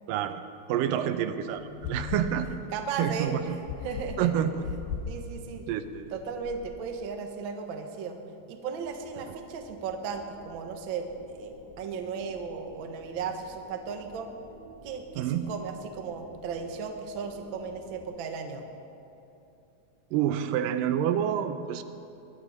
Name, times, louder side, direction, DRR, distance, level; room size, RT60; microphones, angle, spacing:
voice 1, 0.1-0.4 0.7-2.5 3.0-3.6 4.2-4.6 5.7-6.1 15.2-15.5 20.1-21.8, right 10 dB, 85° right, 10 dB, 2.2 m, -28 dB
sound 1, 1.5-6.9, left 5 dB, 75° left, 2.6 m, -40 dB
voice 2, 2.5-4.3 5.0-5.7 6.1-8.2 8.5-14.3 14.8-18.6, right 5 dB, 70° right, 5 dB, 1.1 m, -36 dB
sound 2, 8.7-18.1, equal, 15° left, 0.8 m, -53 dB
20.5 x 12.0 x 5.4 m, 2.8 s
omnidirectional pair, 4.0 m